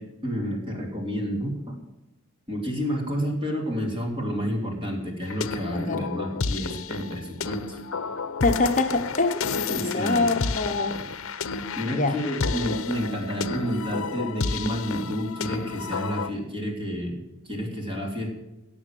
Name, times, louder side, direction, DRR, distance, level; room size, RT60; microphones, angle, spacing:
voice 1, 0.0-1.8 2.5-7.8 9.8-10.3 11.8-18.3, equal, 25° right, 1 dB, 3.1 m, -30 dB
sound 1, 5.2-16.3, left 4 dB, 65° left, 0.8 m, -31 dB
voice 2, 5.7-6.1 8.4-11.0 11.9-12.2, left 3 dB, 35° left, 4 dB, 0.9 m, -25 dB
17.0 x 7.0 x 7.6 m, 1.0 s
head